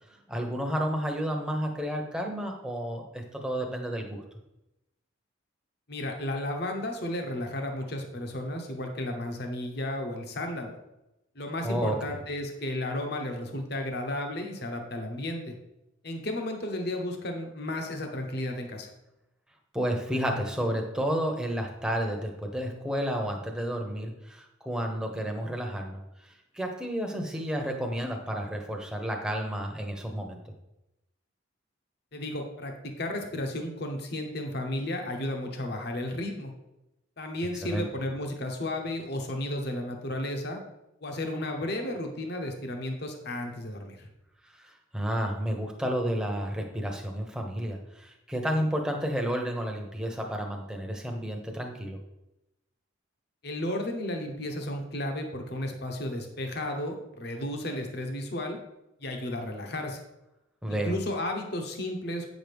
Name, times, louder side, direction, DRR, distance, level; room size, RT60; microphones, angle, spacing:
voice 1, 0.3-4.2 11.6-12.2 19.7-26.0 26.5-30.4 37.6-37.9 44.6-52.0 60.6-61.0, equal, 5° right, 2 dB, 0.9 m, -31 dB
voice 2, 5.9-10.8 11.3-15.5 16.0-18.9 32.1-36.5 37.2-40.6 41.0-44.1 53.4-58.6 59.0-60.0 60.7-62.3, left 1 dB, 55° left, 3 dB, 1.0 m, -33 dB
8.5 x 6.2 x 3.5 m, 0.91 s
head